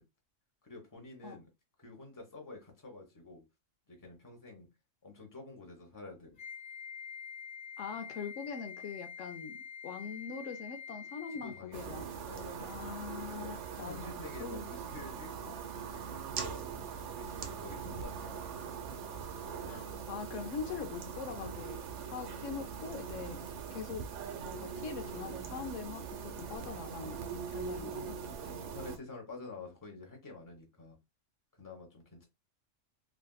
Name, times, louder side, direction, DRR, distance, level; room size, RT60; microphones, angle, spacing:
voice 1, 0.6-1.5 1.8-3.4 3.9-4.7 5.0-6.4 11.4-12.7 13.4-13.5 13.8-15.6 15.9-18.6 22.0-22.1 23.2-23.4 28.3-31.0 31.6-32.3, left 3 dB, 15° left, 0.9 m, -49 dB
Wind instrument woodwind instrument, 6.4-11.7, left 6 dB, 40° left, 1.3 m, -46 dB
voice 2, 7.8-12.1 12.6-14.7 19.7-23.4 23.7-24.1 24.4-27.2 27.5-28.2, left 6 dB, 80° left, 0.9 m, -43 dB
sound 1, 11.7-29.0, right 6 dB, 70° right, 0.9 m, -42 dB
3.5 x 2.6 x 2.2 m
omnidirectional pair, 1.3 m